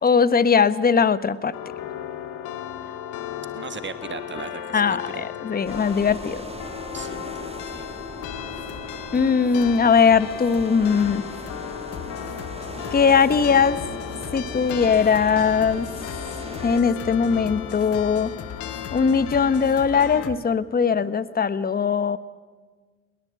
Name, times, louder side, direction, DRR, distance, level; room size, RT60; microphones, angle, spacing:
voice 1, 0.0-1.5 4.7-6.4 9.1-11.2 12.9-13.8 14.3-15.9 16.6-18.3 18.9-22.2, left 6 dB, 30° left, 15 dB, 1.2 m, -20 dB
sound 1, 1.5-20.3, left 11 dB, 75° left, 2.0 m, -36 dB
voice 2, 3.5-5.2 6.9-8.0, right 6 dB, 35° right, 10 dB, 1.5 m, -38 dB
sound 2, 5.7-16.8, right 3 dB, 20° right, 1.5 m, -40 dB
sound 3, 7.9-20.4, left 7 dB, 50° left, 1.9 m, -40 dB
22.0 x 21.5 x 8.4 m, 1.4 s
hypercardioid pair, 65°, 31 cm